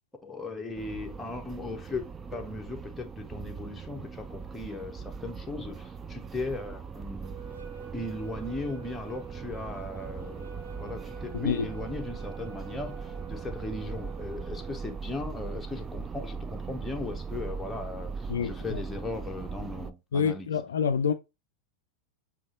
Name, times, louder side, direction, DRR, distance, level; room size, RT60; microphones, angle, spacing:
voice 1, 0.2-7.4 7.9-20.5, left 2 dB, 10° left, 0.8 m, -37 dB
sound 1, 0.7-19.9, right 5 dB, 20° right, 0.3 m, -40 dB
sound 2, 7.2-15.0, right 6 dB, 80° right, 1.2 m, -46 dB
voice 2, 18.3-18.8 20.1-21.1, left 6 dB, 65° left, 0.4 m, -27 dB
7.1 x 2.8 x 2.4 m
figure-of-eight pair, 90°, 0 cm